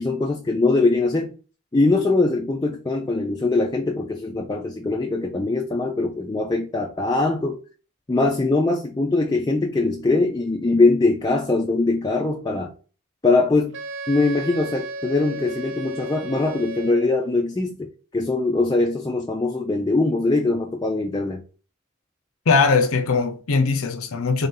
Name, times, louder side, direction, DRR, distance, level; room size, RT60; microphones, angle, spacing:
voice 1, 0.0-1.3 1.7-7.6 8.1-12.7 13.2-13.8 14.1-17.9 18.1-21.4, left 3 dB, 20° left, 0.4 m, -22 dB
Wind instrument woodwind instrument, 13.7-17.3, right 2 dB, 55° right, 0.5 m, -34 dB
voice 2, 22.5-24.5, left 4 dB, 85° left, 0.6 m, -20 dB
3.6 x 2.7 x 3.7 m
head